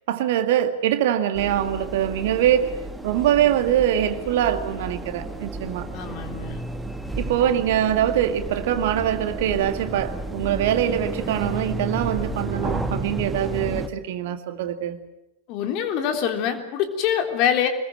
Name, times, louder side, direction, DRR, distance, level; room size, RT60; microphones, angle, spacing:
voice 1, 0.1-2.7 3.0-5.9 7.2-15.0, right 10 dB, 55° right, 2.1 m, -23 dB
sound 1, 1.3-13.9, right 2 dB, 5° right, 1.9 m, -32 dB
voice 2, 5.9-6.6 15.5-17.7, left 9 dB, 40° left, 3.6 m, -24 dB
26.0 x 21.0 x 7.8 m
figure-of-eight pair, 90°, 0 cm